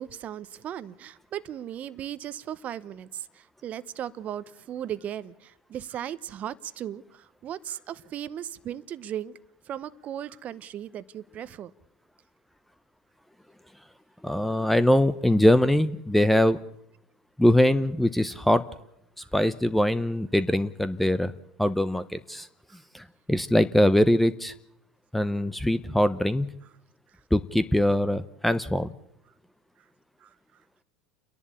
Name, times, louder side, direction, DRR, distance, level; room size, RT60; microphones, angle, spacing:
voice 1, 0.0-9.4 9.6-11.7 19.2-19.3 22.7-22.8 27.1-27.2 30.2-30.6, right 10 dB, 40° right, 0.9 m, -37 dB
voice 2, 14.2-16.6 17.4-18.6 19.3-21.3 21.6-22.5 22.9-24.5 25.1-26.5 27.3-28.9, left 1 dB, 5° left, 0.7 m, -22 dB
29.5 x 11.0 x 8.5 m
hypercardioid pair, 90°, 4 cm